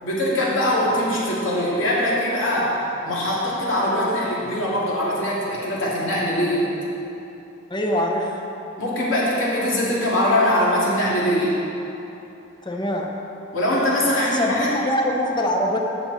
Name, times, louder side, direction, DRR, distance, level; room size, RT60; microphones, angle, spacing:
voice 1, 0.0-2.7 3.0-6.7 8.8-11.5 13.5-14.7, left 1 dB, 75° left, -6 dB, 2.6 m, -22 dB
voice 2, 7.7-8.4 12.6-13.1 14.3-15.8, left 1 dB, 25° left, 1 dB, 0.9 m, -23 dB
16.0 x 6.2 x 4.2 m, 2.9 s
head